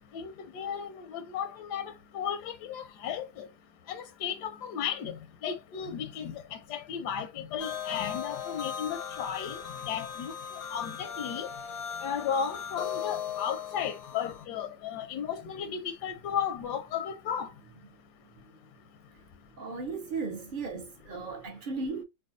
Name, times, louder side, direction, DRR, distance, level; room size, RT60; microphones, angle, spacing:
voice 1, 0.1-3.5 3.9-5.2 5.4-10.3 10.7-11.5 12.0-17.5, left 8 dB, 80° left, 1.2 m, -34 dB
sound 1, 7.6-14.4, left 8 dB, 60° left, 0.7 m, -38 dB
voice 2, 19.6-22.0, right 4 dB, 65° right, 0.5 m, -36 dB
4.8 x 2.3 x 2.5 m
omnidirectional pair, 1.8 m